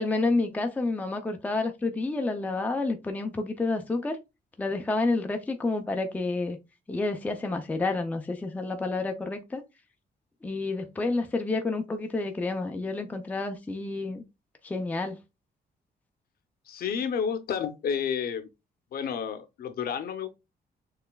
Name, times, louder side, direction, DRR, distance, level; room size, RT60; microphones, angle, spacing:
voice 1, 0.0-4.2 4.6-6.6 6.9-9.6 10.4-14.2 14.6-15.2, left 3 dB, 10° left, 0.4 m, -29 dB
voice 2, 16.7-18.5 18.9-20.3, left 7 dB, 60° left, 0.7 m, -30 dB
6.6 x 3.2 x 2.2 m
wide cardioid pair, 175°, 17 cm